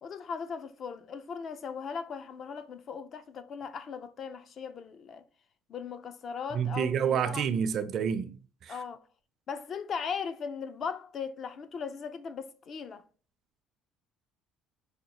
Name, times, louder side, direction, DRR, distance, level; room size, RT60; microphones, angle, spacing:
voice 1, 0.0-5.2 5.7-7.5 8.7-9.0 9.5-13.0, left 6 dB, 45° left, 0.5 m, -38 dB
voice 2, 6.5-8.3 8.6-8.7, right 7 dB, 55° right, 0.4 m, -28 dB
5.0 x 2.2 x 2.8 m
cardioid pair, 110°, 0 cm